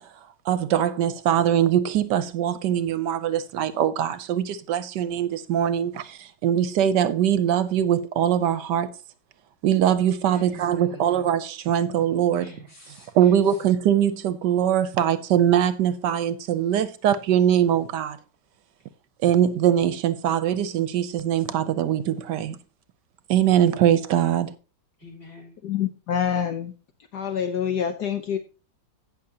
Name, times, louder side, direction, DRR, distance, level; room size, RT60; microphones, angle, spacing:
voice 1, 0.5-8.9 9.6-12.5 13.1-18.2 19.2-22.6 23.3-24.5, right 10 dB, 75° right, 1.2 m, -22 dB
voice 2, 10.3-11.2 12.4-13.6 25.0-25.5, left 1 dB, 40° left, 4.2 m, -46 dB
voice 3, 25.6-26.7 27.1-28.4, left 8 dB, 65° left, 1.4 m, -26 dB
17.0 x 6.4 x 2.8 m
omnidirectional pair, 2.0 m